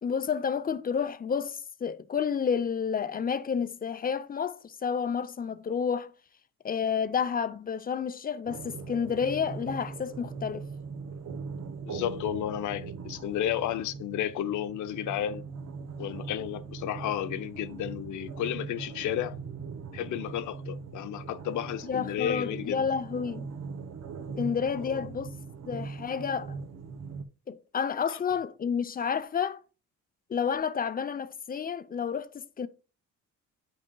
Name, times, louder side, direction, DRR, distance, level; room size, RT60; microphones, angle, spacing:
voice 1, 0.0-6.1 6.6-10.7 21.8-23.5 24.4-25.3 25.7-26.6 27.5-29.6 30.3-32.7, left 6 dB, 30° left, 0.6 m, -30 dB
sound 1, 8.5-27.2, right 5 dB, 60° right, 0.8 m, -40 dB
voice 2, 11.8-15.4 16.0-19.4 19.9-22.9 24.8-25.1, left 11 dB, 80° left, 0.6 m, -32 dB
8.6 x 5.4 x 2.3 m
cardioid pair, 90°, 30 cm